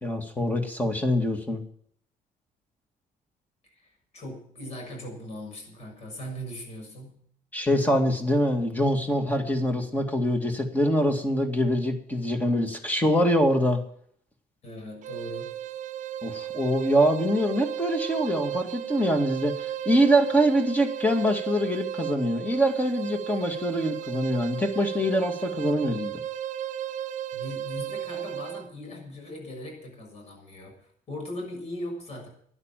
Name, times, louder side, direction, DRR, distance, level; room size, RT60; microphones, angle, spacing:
voice 1, 0.0-1.6 7.5-13.8 16.2-26.2, equal, 10° left, 5 dB, 2.1 m, -24 dB
voice 2, 3.6-7.2 14.6-15.6 27.3-32.3, left 1 dB, 45° left, 2 dB, 6.9 m, -39 dB
sound 1, 15.0-28.7, right 11 dB, 55° right, 0.7 m, -34 dB
12.5 x 10.5 x 9.0 m, 0.63 s
cardioid pair, 160°, 15 cm